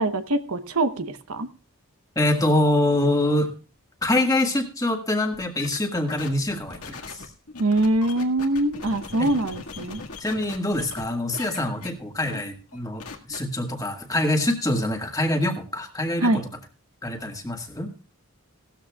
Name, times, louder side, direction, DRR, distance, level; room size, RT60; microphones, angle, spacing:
voice 1, 0.0-1.5 7.6-10.0 16.2-16.4, right 1 dB, 80° right, 9 dB, 1.0 m, -23 dB
voice 2, 2.1-3.5 4.0-7.2 9.2-9.3 10.2-16.4 17.0-17.9, left 1 dB, 15° left, 3 dB, 1.7 m, -25 dB
sound 1, 5.3-11.1 11.3-11.9 12.2-12.4 12.7-13.4, left 4 dB, 85° left, 1.8 m, -39 dB
18.0 x 13.5 x 2.3 m, 0.34 s
head